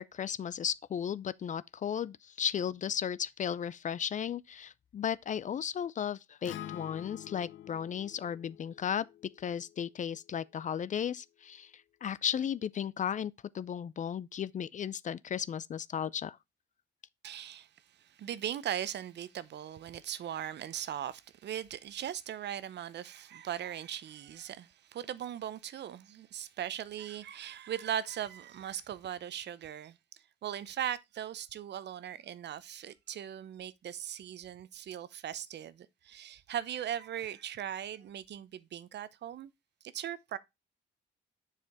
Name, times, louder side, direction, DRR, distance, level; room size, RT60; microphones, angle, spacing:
voice 1, 0.0-9.1 9.4-11.7 12.0-16.4, left 8 dB, 40° left, 0.4 m, -35 dB
Acoustic guitar, 6.4-10.7, left 11 dB, 70° left, 0.7 m, -48 dB
voice 2, 17.2-39.5 39.9-40.4, right 10 dB, 60° right, 0.7 m, -39 dB
6.8 x 4.9 x 3.5 m
cardioid pair, 90°, 20 cm